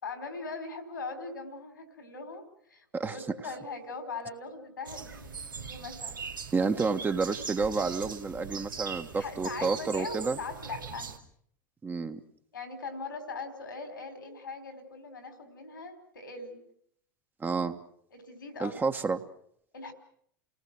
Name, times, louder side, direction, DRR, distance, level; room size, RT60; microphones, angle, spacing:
voice 1, 0.0-2.4 2.7-6.2 9.1-11.1 12.5-16.6 18.1-19.0 19.7-19.9, left 4 dB, 85° left, 8 dB, 4.3 m, -40 dB
sound 1, 4.8-11.2, right 5 dB, 85° right, 2.4 m, -41 dB
voice 2, 6.5-10.4 11.8-12.2 17.4-17.8 18.6-19.2, right 4 dB, 20° right, 7 dB, 1.5 m, -30 dB
30.0 x 19.0 x 6.2 m, 0.67 s
figure-of-eight pair, 85°, 11 cm